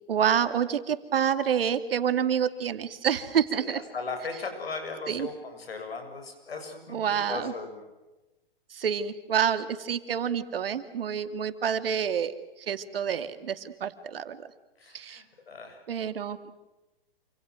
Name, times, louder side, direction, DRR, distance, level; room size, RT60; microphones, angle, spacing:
voice 1, 0.1-3.8 5.1-5.3 6.9-7.5 8.7-14.5 14.9-15.2 15.9-16.5, right 8 dB, 75° right, 10 dB, 2.6 m, -28 dB
voice 2, 3.5-7.0 7.3-7.9 14.8-15.8, left 4 dB, 80° left, 6 dB, 7.4 m, -37 dB
28.5 x 27.0 x 6.4 m, 1.0 s
hypercardioid pair, 120°, 29 cm